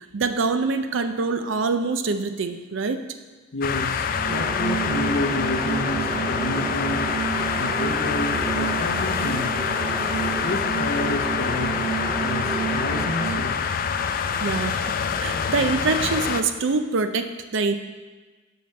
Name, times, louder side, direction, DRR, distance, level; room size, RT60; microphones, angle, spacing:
voice 1, 0.1-3.0 14.4-14.8 15.2-17.7, right 4 dB, 75° right, 8 dB, 0.5 m, -24 dB
voice 2, 3.5-7.2 7.6-9.8 10.4-11.9 12.2-13.6, left 2 dB, 90° left, 5 dB, 0.7 m, -30 dB
sound 1, 3.6-16.4, left 6 dB, 45° left, 0.3 m, -26 dB
sound 2, 4.1-13.4, right 4 dB, 5° right, 1.3 m, -29 dB
5.8 x 5.4 x 5.3 m, 1.3 s
head